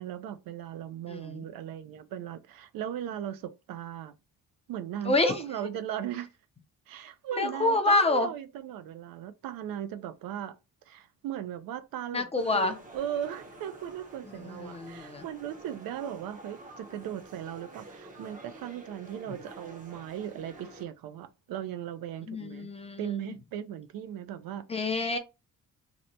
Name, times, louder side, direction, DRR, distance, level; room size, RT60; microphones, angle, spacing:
voice 1, 0.0-4.2 4.7-6.3 6.9-10.6 10.9-22.7 23.0-24.7, right 10 dB, 80° right, 0.5 m, -38 dB
voice 2, 1.1-1.4 5.0-5.4 7.3-8.3 12.1-12.8 14.4-15.2 19.3-19.4 22.3-23.3 24.7-25.2, left 2 dB, 20° left, 0.4 m, -27 dB
sound 1, 12.4-20.9, right 2 dB, 25° right, 0.6 m, -49 dB
2.9 x 2.1 x 3.9 m
cardioid pair, 140°, 34 cm